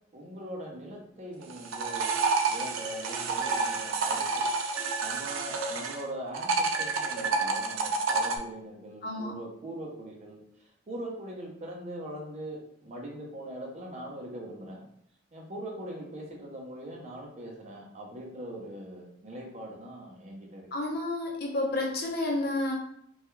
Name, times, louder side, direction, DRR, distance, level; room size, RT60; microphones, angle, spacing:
voice 1, 0.1-2.2 2.5-4.5 5.0-14.8 15.3-20.7, right 1 dB, 35° right, -1 dB, 0.5 m, -41 dB
sound 1, 1.4-6.0 6.3-8.4, right 4 dB, 90° right, 0.4 m, -29 dB
voice 2, 9.0-9.3 20.7-22.7, left 2 dB, 50° left, -1 dB, 0.7 m, -30 dB
2.3 x 2.2 x 3.0 m, 0.71 s
head